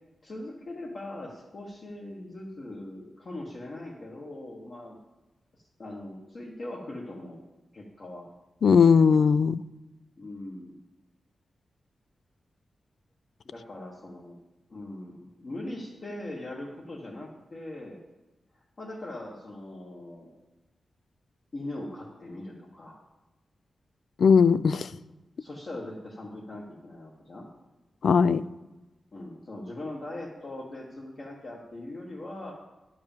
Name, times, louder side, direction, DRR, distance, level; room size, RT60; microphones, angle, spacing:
voice 1, 0.2-5.0 5.8-7.4 7.7-8.3 10.2-10.7 13.4-14.4 14.7-18.0 18.8-20.3 21.5-23.0 25.4-27.5 29.1-32.5, left 1 dB, 40° left, -3 dB, 1.3 m, -40 dB
voice 2, 8.6-9.6 24.2-24.9 28.0-28.4, left 6 dB, 65° left, 16 dB, 0.3 m, -19 dB
10.5 x 4.8 x 7.2 m, 1.1 s
wide cardioid pair, 145°, 0 cm